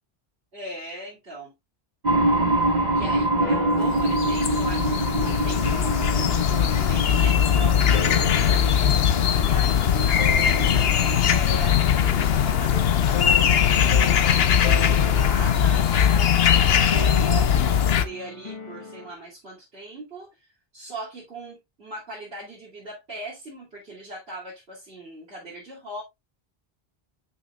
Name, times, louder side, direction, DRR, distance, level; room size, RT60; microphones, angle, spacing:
voice 1, 0.5-1.5 2.8-20.5 20.7-26.0, right 1 dB, 75° right, 3.1 m, -39 dB
sound 1, 2.0-11.6, right 1 dB, 45° right, 1.9 m, -26 dB
sound 2, 2.9-12.6 13.1-19.1, left 2 dB, 30° left, 1.0 m, -38 dB
sound 3, 3.8-18.1, left 9 dB, 75° left, 1.0 m, -20 dB
8.8 x 6.3 x 2.4 m
omnidirectional pair, 1.1 m